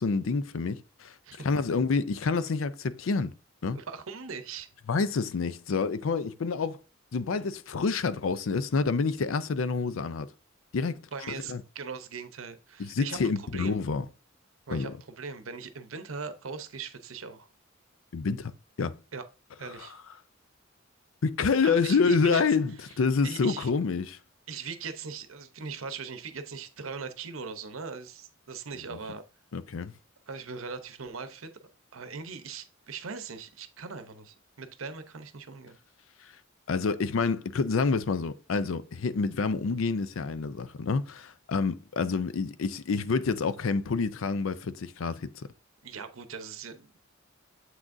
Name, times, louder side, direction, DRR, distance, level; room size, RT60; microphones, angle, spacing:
voice 1, 0.0-1.2 1.4-3.3 3.6-3.8 4.9-6.8 7.1-10.3 10.7-11.0 11.5-11.6 12.8-14.0 14.7-14.9 18.1-18.5 18.8-19.0 19.6-19.9 21.2-24.2 29.5-29.9 36.2-36.4 36.7-45.4, left 4 dB, 75° left, 0.5 m, -28 dB
voice 2, 3.7-4.7 11.1-13.7 14.7-14.9 15.2-17.5 19.1-19.2 19.6-19.9 21.6-22.4 23.2-23.7 24.5-29.2 30.3-31.5 31.9-35.8 45.8-47.0, right 5 dB, 80° right, 0.8 m, -40 dB
7.5 x 6.0 x 2.6 m
head